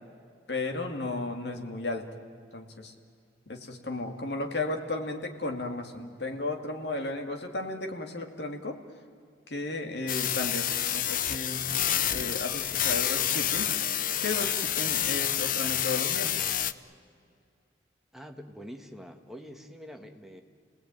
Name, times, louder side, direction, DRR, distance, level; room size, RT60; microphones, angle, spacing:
voice 1, 0.5-2.1 2.5-2.9 3.5-8.8 9.5-11.6 12.1-13.7 14.2-16.3, left 2 dB, 65° left, 4 dB, 2.4 m, -34 dB
sound 1, 10.1-16.7, left 10 dB, 50° left, 0.7 m, -28 dB
voice 2, 18.1-20.4, equal, ahead, 4 dB, 1.5 m, -45 dB
29.5 x 19.5 x 9.2 m, 2.3 s
head